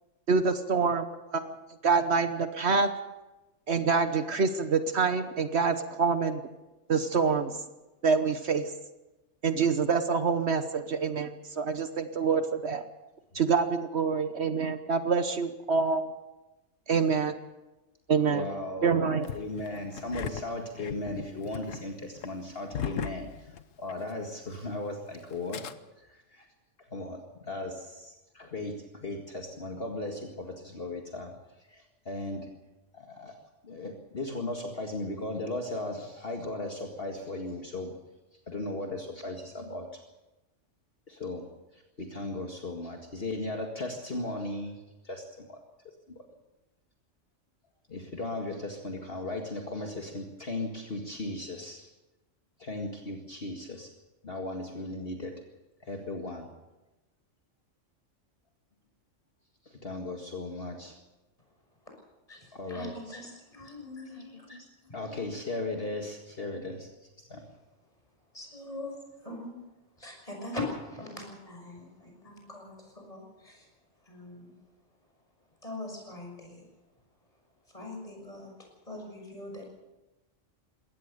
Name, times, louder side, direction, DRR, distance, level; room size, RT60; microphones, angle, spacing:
voice 1, 0.3-1.1 1.3-1.5 1.8-2.9 3.7-6.4 6.9-7.5 8.0-8.7 9.4-12.8 13.3-16.1 16.9-17.3 18.1-18.4 18.8-19.3, right 5 dB, 60° right, 9 dB, 1.3 m, -26 dB
voice 2, 18.2-19.0 19.3-25.6 26.0-26.5 26.8-31.3 31.6-32.5 32.9-33.4 33.6-37.9 38.3-39.9 41.1-45.6 46.2-46.3 47.9-51.9 52.6-53.9 54.2-55.3 55.8-56.5 59.6-61.0 62.5-63.2 63.7-63.8 64.1-66.9 67.2-67.4, left 2 dB, 50° left, 2 dB, 2.2 m, -37 dB
Engine starting, 19.2-24.1 24.4-24.5 25.3-25.7, left 8 dB, 85° left, 1.3 m, -38 dB
voice 3, 62.3-64.5 64.8-64.9 68.3-69.6 70.0-73.7 74.0-74.5 75.6-76.6 77.7-79.6, left 2 dB, 30° left, 1 dB, 6.5 m, -42 dB
22.0 x 18.0 x 6.8 m, 1.0 s
omnidirectional pair, 1.3 m